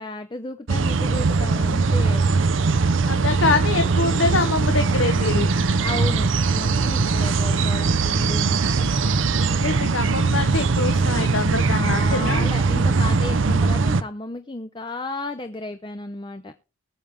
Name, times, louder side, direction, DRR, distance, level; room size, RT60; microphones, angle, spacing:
voice 1, 0.0-2.3 5.8-8.9 11.7-16.5, left 2 dB, 25° left, 7 dB, 0.6 m, -33 dB
sound 1, 0.7-14.0, right 4 dB, 70° right, 0.7 m, -21 dB
voice 2, 3.1-5.5 9.5-12.5, left 3 dB, 75° left, 7 dB, 1.1 m, -24 dB
20.5 x 7.2 x 3.4 m, 0.30 s
head